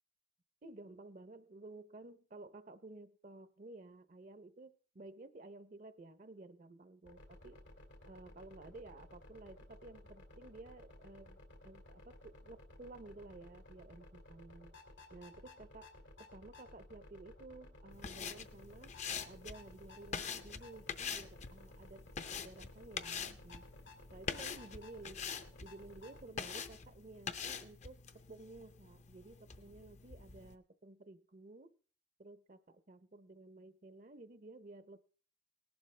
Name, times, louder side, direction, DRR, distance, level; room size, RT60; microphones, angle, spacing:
voice 1, 0.6-7.6 8.1-11.4 11.6-14.8 15.1-15.9 16.2-18.9 19.3-23.7 24.1-25.3 25.6-28.0 28.3-31.8 32.2-35.0, right 2 dB, 45° right, 12 dB, 0.7 m, -54 dB
sound 1, 7.1-26.3, left 1 dB, 85° left, 2.4 m, -57 dB
sound 2, 17.9-30.5, left 6 dB, 40° left, 0.7 m, -45 dB
18.5 x 11.5 x 3.3 m, 0.43 s
head